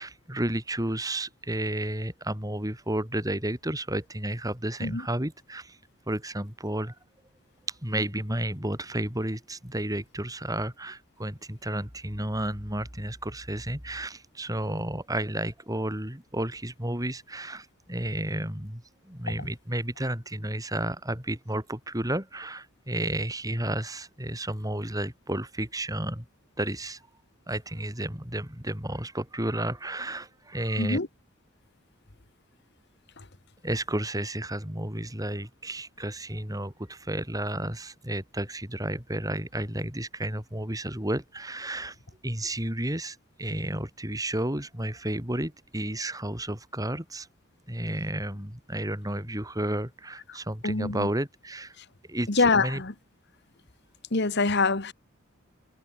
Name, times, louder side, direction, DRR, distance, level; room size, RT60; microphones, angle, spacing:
voice 1, 0.0-5.8 6.1-6.9 7.8-26.2 26.6-27.0 27.5-31.0 33.6-42.0 42.2-47.3 47.7-51.7 52.1-52.8, right 1 dB, 20° right, 5.1 m, -32 dB
voice 2, 50.6-51.1 52.3-52.9 54.1-54.9, left 3 dB, 55° left, 1.7 m, -24 dB
head